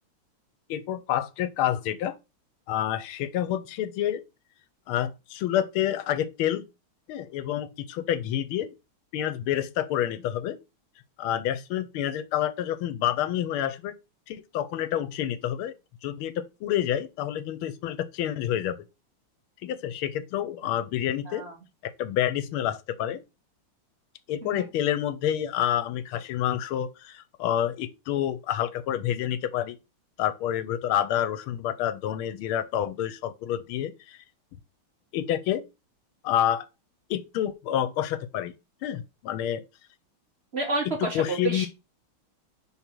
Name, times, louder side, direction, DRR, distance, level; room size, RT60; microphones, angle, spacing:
voice 1, 0.7-2.1 2.7-4.2 4.9-6.6 7.1-8.7 9.1-10.6 11.2-13.9 14.3-15.7 16.0-18.8 19.6-21.4 22.0-23.2 24.3-29.8 30.2-34.2 35.1-35.6 36.2-36.6 37.1-38.5 38.8-39.6 41.0-41.7, left 11 dB, 90° left, 1.5 m, -28 dB
voice 2, 40.5-41.7, right 3 dB, 35° right, 1.3 m, -30 dB
5.6 x 3.8 x 4.5 m
omnidirectional pair, 2.3 m